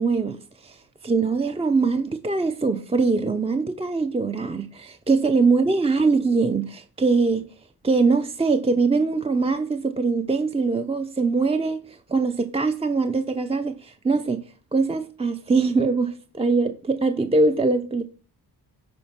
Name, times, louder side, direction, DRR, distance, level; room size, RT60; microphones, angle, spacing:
voice 1, 0.0-7.5 7.8-18.0, right 4 dB, 15° right, 0.5 m, -22 dB
10.5 x 4.2 x 5.8 m
cardioid pair, 95°, 40 cm